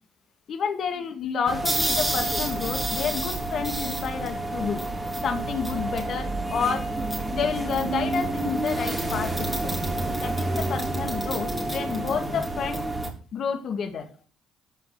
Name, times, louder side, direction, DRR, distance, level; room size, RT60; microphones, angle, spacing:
voice 1, 0.5-4.9 5.2-6.9 7.3-9.8 10.1-12.8 13.3-14.1, left 6 dB, 55° left, 7 dB, 2.2 m, -30 dB
sound 1, 1.5-13.1, right 2 dB, 20° right, 3.9 m, -28 dB
13.5 x 5.9 x 6.7 m, 0.41 s
hypercardioid pair, 50°, 0 cm